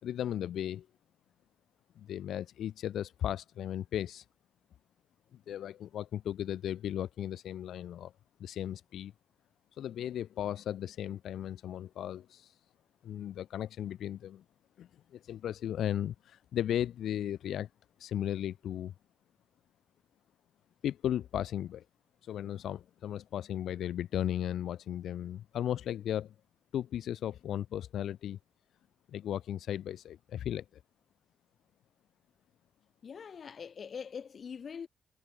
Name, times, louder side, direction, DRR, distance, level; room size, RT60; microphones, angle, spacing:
voice 1, 0.0-0.9 2.0-4.2 5.3-8.1 8.4-9.1 9.8-12.5 13.0-14.4 14.8-17.7 18.0-18.9 20.8-21.8 22.2-26.3 26.7-28.4 29.1-30.6, left 11 dB, 80° left, 4.3 m, -36 dB
voice 2, 33.0-34.9, left 6 dB, 50° left, 6.1 m, -43 dB
cardioid pair, 105°, 0 cm